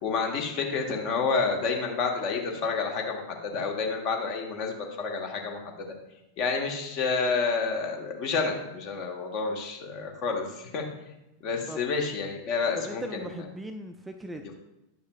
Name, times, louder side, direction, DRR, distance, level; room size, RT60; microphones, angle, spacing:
voice 1, 0.0-5.9 6.4-10.8 11.4-13.4, left 4 dB, 40° left, 2 dB, 1.1 m, -29 dB
voice 2, 12.8-14.5, right 1 dB, 10° right, 5 dB, 0.4 m, -39 dB
8.9 x 5.5 x 2.3 m, 0.93 s
figure-of-eight pair, 90°, 0 cm